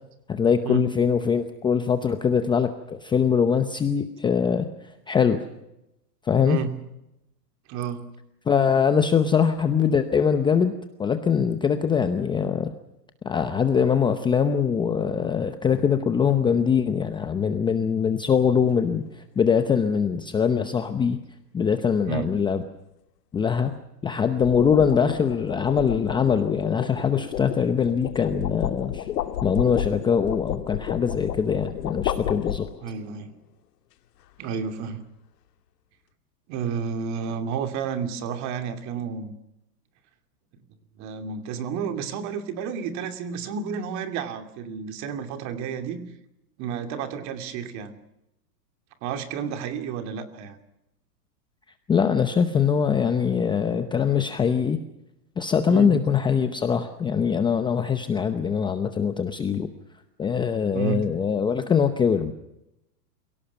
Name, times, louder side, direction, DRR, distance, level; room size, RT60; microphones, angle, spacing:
voice 1, 0.3-5.4 6.2-6.6 8.5-10.7 11.0-12.7 13.2-21.2 21.5-22.6 23.3-23.7 24.0-29.1 29.4-32.7 51.9-54.8 55.4-59.7 60.2-62.3, left 6 dB, 10° left, 8 dB, 0.7 m, -22 dB
voice 2, 7.7-8.1 22.1-22.3 32.8-33.3 34.4-35.0 36.5-39.3 41.0-46.0 46.6-48.0 49.0-50.6 55.7-56.0 60.7-61.1, right 7 dB, 35° right, 7 dB, 2.7 m, -31 dB
sound 1, 18.7-19.0 24.1-33.0, left 11 dB, 80° left, 1.7 m, -32 dB
27.0 x 17.5 x 7.0 m, 0.89 s
supercardioid pair, 145°, 48 cm